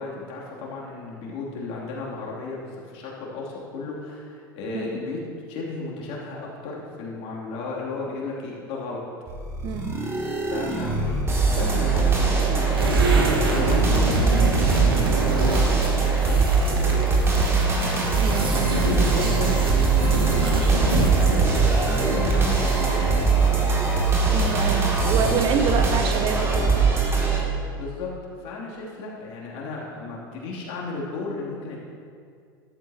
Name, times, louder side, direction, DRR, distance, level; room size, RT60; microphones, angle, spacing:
voice 1, 0.0-5.2 5.5-9.0 10.5-13.0 13.5-14.6 15.2-17.0 18.3-23.8 27.7-28.1 28.4-31.8, left 3 dB, 50° left, -4 dB, 2.9 m, -34 dB
sound 1, 9.3-27.4, right 4 dB, 20° right, 2.5 m, -21 dB
voice 2, 9.6-10.0 18.2-18.7 24.3-26.7, right 6 dB, 40° right, 7 dB, 0.8 m, -27 dB
sound 2, 12.7-21.8, right 2 dB, 80° right, 1.7 m, -27 dB
14.0 x 12.0 x 2.9 m, 2.2 s
figure-of-eight pair, 80°, 12 cm